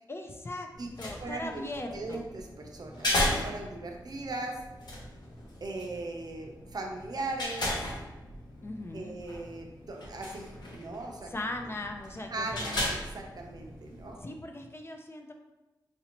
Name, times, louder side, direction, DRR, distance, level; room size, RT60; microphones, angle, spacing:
voice 1, 0.1-0.7 1.0-2.2 8.6-9.2 11.3-12.8 14.2-15.3, left 2 dB, 30° left, 3 dB, 0.4 m, -39 dB
sound 1, 0.7-14.2, left 1 dB, 65° left, 0.8 m, -37 dB
voice 2, 1.2-1.6 1.9-4.6 5.6-7.8 8.9-11.3 12.3-12.8 13.1-14.2, right 2 dB, 55° right, 1 dB, 0.6 m, -38 dB
4.2 x 2.6 x 2.9 m, 1.1 s
wide cardioid pair, 85°, 8 cm